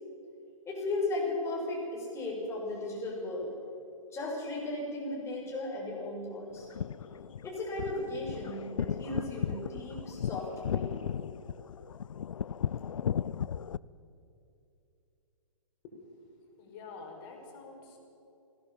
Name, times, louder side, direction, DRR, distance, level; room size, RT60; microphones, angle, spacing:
voice 1, 0.6-3.5 4.1-6.7 7.4-10.9, left 2 dB, 15° left, -3 dB, 6.5 m, -36 dB
sound 1, 6.6-13.8, left 8 dB, 70° left, 0.5 m, -35 dB
voice 2, 15.8-18.0, left 3 dB, 40° left, 1 dB, 5.7 m, -48 dB
21.0 x 17.5 x 7.3 m, 2.8 s
figure-of-eight pair, 125°, 17 cm